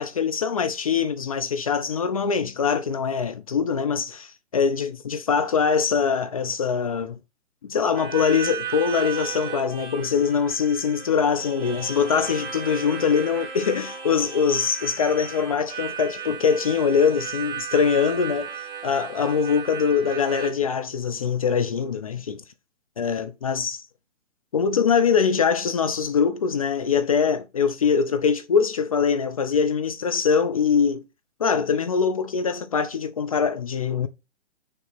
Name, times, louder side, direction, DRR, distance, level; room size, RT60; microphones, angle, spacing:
voice 1, 0.0-7.2 7.7-22.4 23.0-23.8 24.5-31.0 31.4-34.1, left 6 dB, 30° left, 0.4 m, -23 dB
Harmonica, 7.9-20.5, right 7 dB, 15° right, 0.6 m, -36 dB
Wind instrument woodwind instrument, 10.7-15.0, right 2 dB, 75° right, 1.3 m, -43 dB
6.5 x 2.9 x 5.8 m
hypercardioid pair, 140°, 36 cm